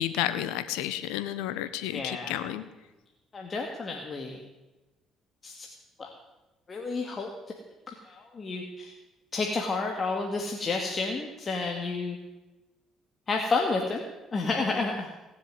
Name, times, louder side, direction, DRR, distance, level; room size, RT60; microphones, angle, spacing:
voice 1, 0.0-2.6, left 12 dB, 85° left, 12 dB, 1.2 m, -31 dB
voice 2, 1.9-2.5 3.3-4.4 5.4-5.7 6.0-6.1 6.7-7.3 7.9-8.9 9.3-12.2 13.3-14.0 14.3-15.1, left 3 dB, 40° left, 1 dB, 2.4 m, -30 dB
19.0 x 7.5 x 9.5 m, 1.1 s
supercardioid pair, 65°, 0 cm